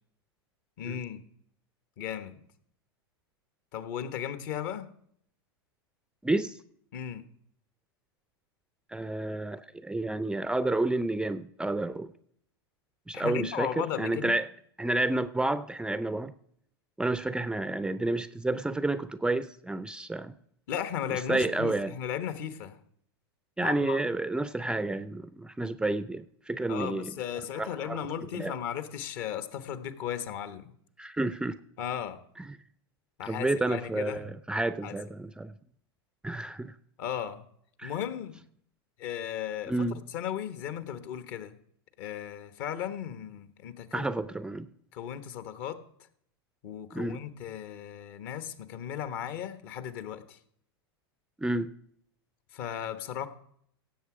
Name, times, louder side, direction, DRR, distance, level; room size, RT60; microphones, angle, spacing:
voice 1, 0.8-1.2 2.0-2.4 3.7-4.9 6.9-7.2 13.1-14.3 20.7-22.8 23.6-24.0 26.7-30.7 31.8-32.2 33.2-34.3 34.8-35.0 37.0-37.4 37.8-38.4 39.0-41.6 42.0-44.1 44.9-45.8 46.6-50.4 52.5-53.3, left 9 dB, 55° left, 1.2 m, -36 dB
voice 2, 6.2-6.5 8.9-12.1 13.1-14.4 14.8-16.3 17.0-20.3 21.3-21.9 23.6-27.1 27.5-28.0 28.4-28.5 31.0-31.6 33.2-35.5 36.2-36.7 37.8-37.9 39.7-40.0 43.9-44.7 46.9-47.2 51.4-51.7, right 2 dB, 5° right, 0.5 m, -30 dB
16.5 x 7.6 x 4.9 m
hypercardioid pair, 95°, 13 cm